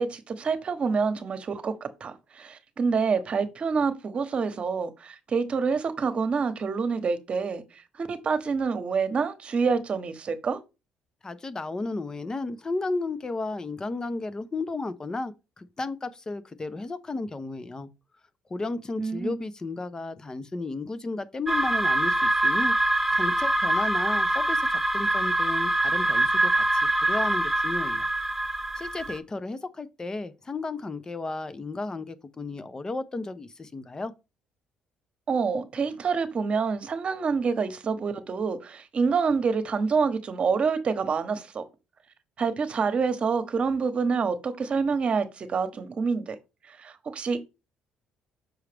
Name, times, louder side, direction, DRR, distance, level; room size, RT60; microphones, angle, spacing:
voice 1, 0.0-10.6 19.0-19.3 35.3-41.6 42.4-46.4 46.7-47.4, right 5 dB, 45° right, 1.1 m, -27 dB
voice 2, 11.2-17.9 18.5-22.7 23.1-28.1 28.8-34.1, left 3 dB, 25° left, 0.8 m, -33 dB
sound 1, 21.5-29.2, right 1 dB, 10° right, 1.0 m, -24 dB
6.2 x 4.8 x 3.4 m
supercardioid pair, 85°, 3 cm